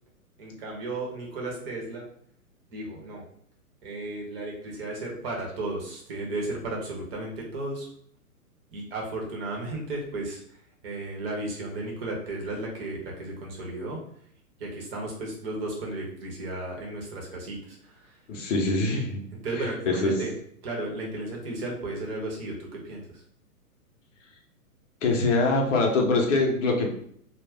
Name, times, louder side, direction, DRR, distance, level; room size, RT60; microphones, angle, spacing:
voice 1, 0.4-2.1 2.7-3.2 3.8-7.9 8.7-10.6 10.8-14.0 14.6-18.2 19.3-20.3 20.6-23.2, right 2 dB, 40° right, -1 dB, 0.9 m, -34 dB
voice 2, 18.3-19.3 19.6-20.1 25.0-26.9, left 3 dB, 55° left, 1 dB, 0.7 m, -24 dB
2.3 x 2.1 x 3.3 m, 0.66 s
hypercardioid pair, 130°, 46 cm